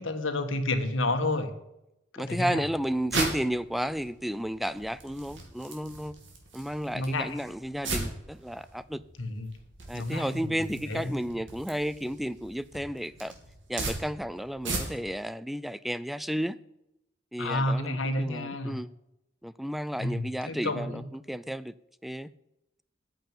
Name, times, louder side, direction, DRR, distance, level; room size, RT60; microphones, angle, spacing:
voice 1, 0.0-1.5 2.1-2.6 6.9-7.4 9.2-9.6 9.9-11.2 17.4-18.8 20.0-21.0, left 2 dB, 85° left, 1.5 m, -30 dB
voice 2, 2.2-6.1 6.5-9.0 9.9-13.3 13.7-16.6 17.3-18.9 19.4-21.7 22.0-22.3, equal, ahead, 0.4 m, -32 dB
sound 1, 2.4-15.2, right 2 dB, 70° right, 2.8 m, -38 dB
9.0 x 7.6 x 8.8 m
head